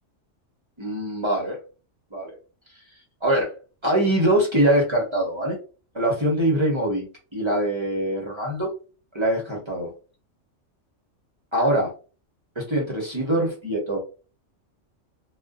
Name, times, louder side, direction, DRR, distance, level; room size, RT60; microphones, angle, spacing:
voice 1, 0.8-1.6 2.1-2.4 3.2-3.5 3.8-5.6 5.9-7.1 7.3-8.7 9.1-9.9 11.5-11.9 12.6-14.0, right 1 dB, 30° right, -2 dB, 0.7 m, -23 dB
2.4 x 2.2 x 2.3 m, 0.35 s
omnidirectional pair, 1.3 m